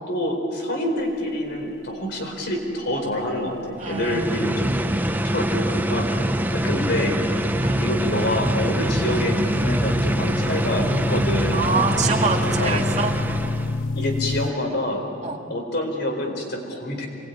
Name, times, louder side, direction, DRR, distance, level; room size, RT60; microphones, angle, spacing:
voice 1, 0.1-4.7 5.3-6.1 6.5-7.2 7.8-11.7 12.4-12.8 13.9-15.0 15.5-17.1, left 1 dB, 55° left, 3 dB, 4.5 m, -27 dB
sound 1, 3.7-14.5, left 3 dB, 75° left, 0.5 m, -30 dB
sound 2, 3.8-13.8, right 1 dB, 10° right, 0.7 m, -24 dB
voice 2, 3.8-4.7 6.3-6.8 7.6-7.8 11.5-13.1 15.2-15.4, right 4 dB, 35° right, 2 dB, 2.3 m, -26 dB
26.0 x 21.0 x 9.5 m, 2.5 s
head